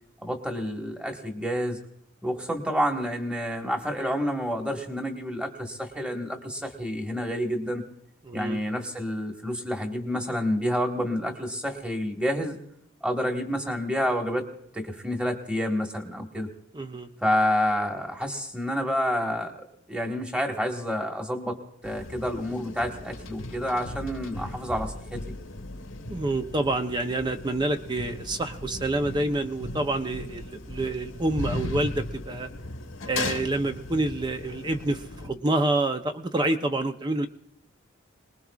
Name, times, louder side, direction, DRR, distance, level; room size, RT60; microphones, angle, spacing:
voice 1, 0.2-1.8 2.2-7.8 8.3-12.6 13.0-14.5 14.7-16.5 17.2-19.6 19.9-21.6 21.8-25.3, equal, 5° right, 2 dB, 1.4 m, -29 dB
voice 2, 8.3-8.6 16.7-17.1 26.1-32.5 33.1-37.3, right 2 dB, 20° right, 6 dB, 0.6 m, -27 dB
sound 1, 21.8-35.3, left 2 dB, 85° left, 1.1 m, -37 dB
27.0 x 20.0 x 2.4 m, 0.71 s
head